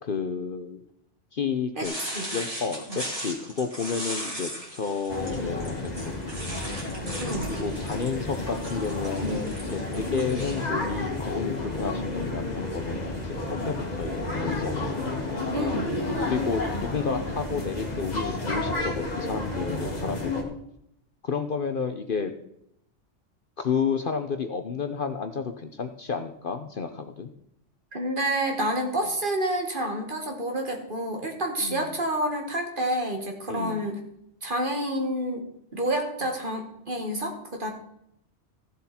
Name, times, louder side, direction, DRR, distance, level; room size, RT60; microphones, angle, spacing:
voice 1, 0.0-0.8 1.3-1.9 2.3-6.4 7.5-14.9 16.2-20.5 21.2-22.3 23.6-27.3 31.6-31.9 33.5-33.9, left 5 dB, 50° left, 7 dB, 0.9 m, -31 dB
sound 1, 1.8-10.7, right 1 dB, 30° right, 3.2 m, -38 dB
voice 2, 1.8-2.3 2.9-3.0 7.1-7.5 15.5-15.9 27.9-34.0 34.4-35.5 35.7-37.7, right 1 dB, 45° right, 2 dB, 2.1 m, -29 dB
sound 2, 5.1-20.4, left 2 dB, 35° left, 2.1 m, -31 dB
15.0 x 7.6 x 4.3 m, 0.75 s
omnidirectional pair, 1.3 m